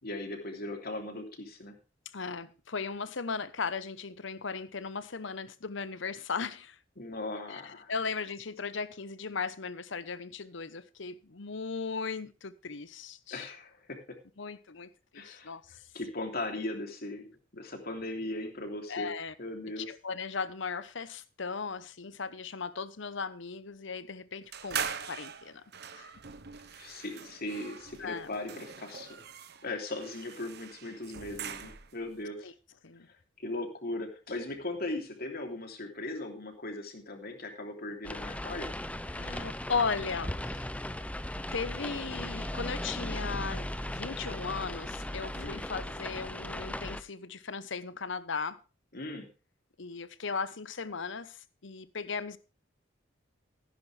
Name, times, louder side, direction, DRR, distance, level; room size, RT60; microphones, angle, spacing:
voice 1, 0.0-1.7 7.0-7.9 13.3-14.0 15.1-17.3 17.5-19.1 19.4-19.9 26.7-29.2 29.6-32.5 33.4-38.7 45.3-45.6 48.9-49.3, left 2 dB, 50° left, 3.0 m, -38 dB
voice 2, 2.1-6.8 7.5-7.6 7.9-13.5 14.4-15.6 18.9-19.3 19.8-25.6 25.9-26.1 28.0-28.3 32.4-32.5 32.8-33.1 39.1-40.7 41.5-48.6 49.8-52.4, left 5 dB, 65° left, 1.0 m, -37 dB
sound 1, 24.5-32.0, right 7 dB, 55° right, 1.1 m, -42 dB
sound 2, 38.0-47.0, left 1 dB, 5° left, 0.7 m, -37 dB
15.0 x 10.5 x 3.3 m
head